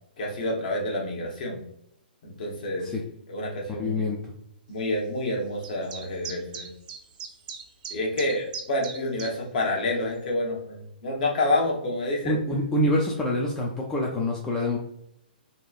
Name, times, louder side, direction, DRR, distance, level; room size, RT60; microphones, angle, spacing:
voice 1, 0.2-1.6 2.2-2.9 3.3-4.1 4.7-6.7 7.9-12.4, left 1 dB, 55° left, -1 dB, 0.9 m, -28 dB
voice 2, 3.8-4.2 12.2-14.8, left 1 dB, 10° left, -3 dB, 0.3 m, -26 dB
sound 1, 5.6-9.3, right 6 dB, 50° right, 0.5 m, -39 dB
2.8 x 2.4 x 2.3 m, 0.76 s
hypercardioid pair, 130°, 5 cm